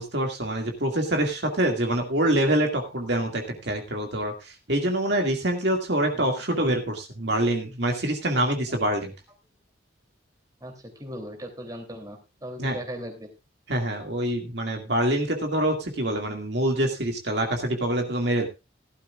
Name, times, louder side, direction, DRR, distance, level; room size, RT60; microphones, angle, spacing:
voice 1, 0.0-9.1 12.6-12.8 13.7-18.5, right 1 dB, 60° right, 3 dB, 2.1 m, -25 dB
voice 2, 10.6-13.3, equal, 20° right, 3 dB, 3.0 m, -38 dB
17.0 x 12.0 x 2.4 m, 0.27 s
head